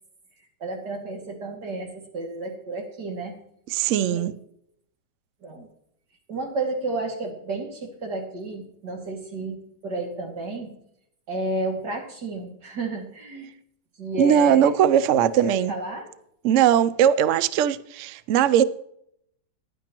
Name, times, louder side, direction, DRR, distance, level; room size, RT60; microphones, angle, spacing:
voice 1, 0.6-3.4 4.1-4.3 5.4-5.7 6.3-10.7 11.3-13.5 14.0-14.7 15.4-16.1, right 2 dB, 65° right, 2.8 m, -31 dB
voice 2, 3.7-4.3 14.2-15.7 16.4-18.6, right 9 dB, 85° right, 0.6 m, -19 dB
15.5 x 10.5 x 3.0 m
omnidirectional pair, 2.0 m